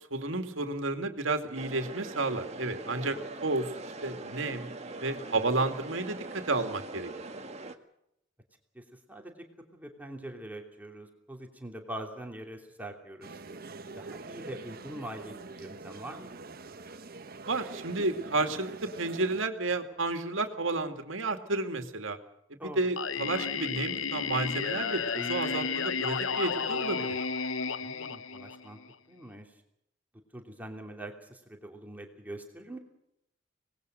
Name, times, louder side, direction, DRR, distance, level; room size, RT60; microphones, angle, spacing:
voice 1, 0.1-3.7 4.0-4.7 5.0-7.1 17.5-22.2 22.6-27.2, right 2 dB, 80° right, 6 dB, 2.4 m, -31 dB
sound 1, 1.5-7.7, right 2 dB, 35° right, 1.8 m, -42 dB
voice 2, 8.7-9.3 9.7-13.4 14.0-16.4 22.6-22.8 27.8-28.8 29.1-29.6 30.3-32.8, right 1 dB, 10° right, 2 dB, 3.0 m, -43 dB
sound 2, 13.2-19.4, right 3 dB, 50° right, 1.2 m, -44 dB
Singing, 23.0-28.9, left 6 dB, 90° left, 0.8 m, -32 dB
25.5 x 19.5 x 6.6 m, 0.77 s
head